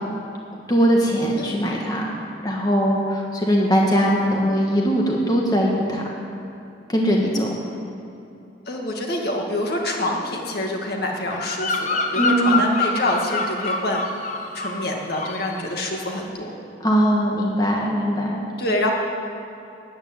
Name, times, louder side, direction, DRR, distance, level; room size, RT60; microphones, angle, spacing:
voice 1, 0.7-2.1 2.4-6.0 6.9-7.5 12.2-12.7 16.8-18.4, equal, 20° left, -2 dB, 1.5 m, -20 dB
voice 2, 8.7-14.0 14.5-16.6 18.6-18.9, left 1 dB, 60° left, 0 dB, 2.1 m, -26 dB
Bird vocalization bird call bird song, 11.3-14.9 15.1-15.5, left 3 dB, 45° left, 1.1 m, -26 dB
13.5 x 8.9 x 9.6 m, 2.8 s
head